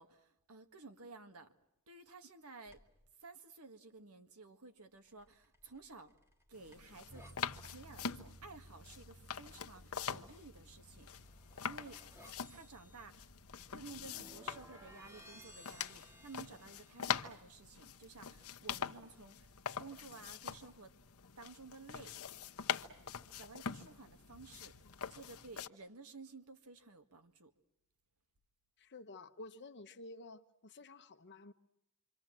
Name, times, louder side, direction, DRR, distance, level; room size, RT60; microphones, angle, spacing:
voice 1, 0.0-1.5 1.9-2.8 3.2-6.1 6.5-7.3 7.7-11.1 11.6-12.0 12.5-13.3 13.7-20.9 21.4-22.2 23.4-24.8 25.1-27.5, right 3 dB, 80° right, 7 dB, 1.9 m, -54 dB
sound 1, 2.6-3.1 5.0-7.4 10.9-17.3, equal, 10° right, 2.2 m, -60 dB
sound 2, 6.5-25.7, left 7 dB, 75° left, 1.0 m, -44 dB
sound 3, 7.1-19.0, right 1 dB, 45° right, 2.8 m, -62 dB
voice 2, 28.8-31.5, left 2 dB, 55° left, 10 dB, 1.1 m, -52 dB
27.5 x 25.0 x 7.5 m, 0.84 s
head